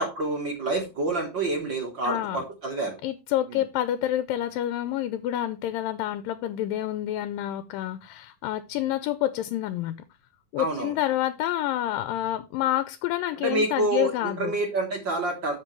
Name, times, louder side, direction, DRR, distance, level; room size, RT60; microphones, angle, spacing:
voice 1, 0.0-3.0 3.5-3.6 10.6-10.9 13.4-15.6, right 2 dB, 50° right, 1.5 m, -28 dB
voice 2, 2.0-2.4 3.0-10.0 10.5-14.6, left 12 dB, 90° left, 2.4 m, -28 dB
12.5 x 5.2 x 3.1 m
omnidirectional pair, 3.9 m